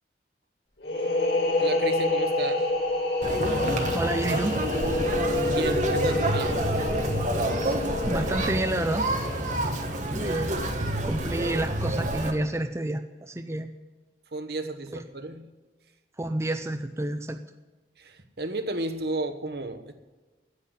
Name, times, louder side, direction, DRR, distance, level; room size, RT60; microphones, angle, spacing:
sound 1, 0.8-10.3, left 2 dB, 85° left, 4.9 m, -28 dB
voice 1, 1.6-2.7 5.5-6.6 14.3-15.5 18.0-19.9, right 2 dB, 60° right, 7 dB, 1.3 m, -33 dB
Conversation, 3.2-12.3, right 1 dB, 45° right, 1.6 m, -28 dB
voice 2, 3.9-4.6 8.1-9.1 10.1-10.6 11.0-13.7 16.2-17.4, right 1 dB, 15° right, 7 dB, 0.5 m, -29 dB
9.8 x 8.3 x 9.6 m, 1.3 s
head